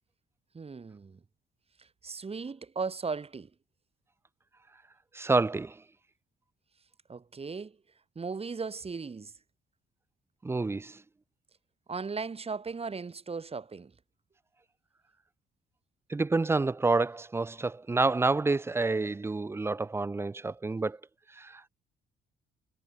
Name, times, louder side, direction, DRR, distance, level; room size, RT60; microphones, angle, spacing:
voice 1, 0.5-1.2 2.0-3.5 7.1-7.8 8.2-9.3 11.9-13.9, right 4 dB, 30° right, 2.3 m, -37 dB
voice 2, 5.1-5.8 10.4-11.0 16.1-21.0 21.4-21.7, right 3 dB, 10° right, 0.4 m, -28 dB
cardioid pair, 90°, 20 cm